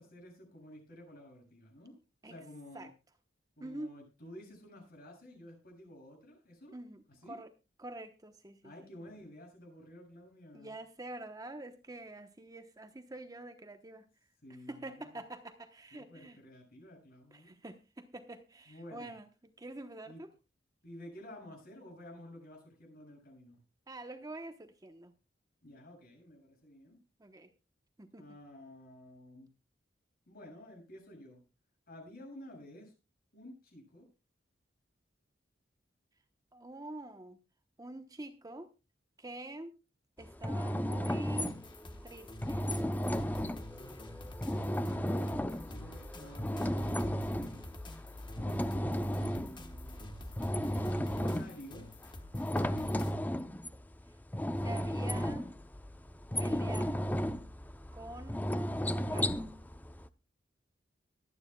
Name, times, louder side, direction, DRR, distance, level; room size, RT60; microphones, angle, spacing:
voice 1, 0.0-1.9 2.2-2.9 3.6-6.8 7.1-7.4 8.6-10.8 14.4-15.2 15.9-17.5 18.7-19.1 20.1-20.2 20.8-23.6 25.6-27.0 28.2-29.5 30.3-31.4 31.9-32.9 33.3-34.1 44.7-47.6 48.4-50.2 51.1-51.9, left 1 dB, 55° left, 1 dB, 7.2 m, -52 dB
voice 2, 3.6-3.9 6.7-7.5 7.8-8.7 10.5-14.1 14.7-16.4 17.3-20.3 23.9-25.1 27.2-27.5 28.0-28.3 36.5-37.4 37.8-38.7 39.2-39.7 40.2-41.6 42.0-42.7 54.6-55.5 56.4-57.1 57.9-58.5 59.0-59.5, right 2 dB, 20° right, 7 dB, 1.0 m, -46 dB
sound 1, 40.2-60.1, equal, 10° left, 0.5 m, -34 dB
sound 2, 41.4-53.1, left 1 dB, 25° left, 1.2 m, -49 dB
23.5 x 9.7 x 2.3 m, 0.28 s
head